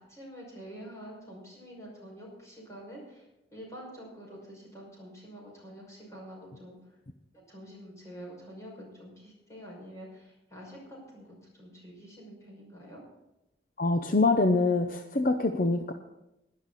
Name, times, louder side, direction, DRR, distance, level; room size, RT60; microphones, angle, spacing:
voice 1, 0.0-6.9 7.3-13.0, equal, 15° left, -3 dB, 5.7 m, -47 dB
voice 2, 13.8-15.9, left 3 dB, 45° left, 6 dB, 0.7 m, -25 dB
17.5 x 11.5 x 4.1 m, 0.92 s
head